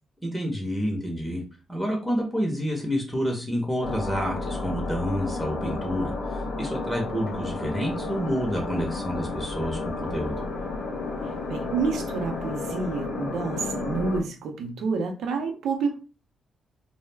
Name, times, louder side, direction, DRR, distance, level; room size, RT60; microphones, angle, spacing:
voice 1, 0.2-1.4 1.7-6.1 6.6-10.4, equal, 5° right, 0.6 m, -28 dB
sound 1, 3.8-14.2, left 3 dB, 55° left, 0.5 m, -32 dB
sound 2, 7.3-12.6, right 1 dB, 50° right, 1.0 m, -48 dB
voice 2, 11.5-16.0, right 4 dB, 80° right, 0.6 m, -29 dB
2.3 x 2.0 x 3.2 m
cardioid pair, 155°, 0 cm